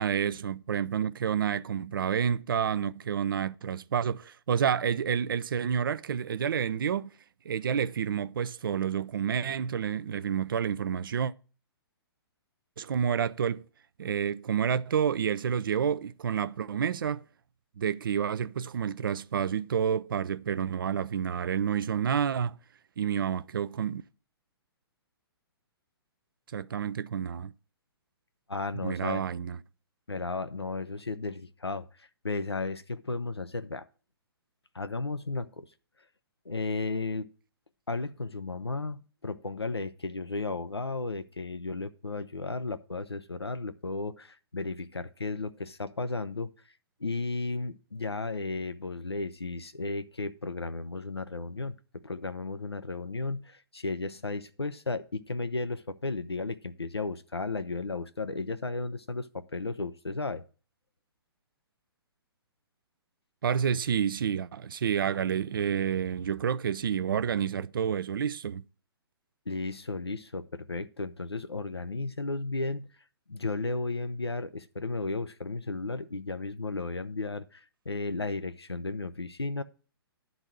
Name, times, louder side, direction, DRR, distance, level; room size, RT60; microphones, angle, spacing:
voice 1, 0.0-7.1 7.4-11.3 12.8-13.6 14.0-17.2 17.8-22.6 23.0-24.0 26.5-27.5 28.8-29.6 63.4-68.6, right 8 dB, 60° right, 0.4 m, -29 dB
voice 2, 28.5-29.2 30.1-33.9 34.7-35.7 36.5-37.3 37.9-46.5 47.0-60.4 69.5-72.9 73.3-79.6, left 3 dB, 90° left, 0.6 m, -34 dB
10.5 x 4.0 x 7.7 m
figure-of-eight pair, 125°, 13 cm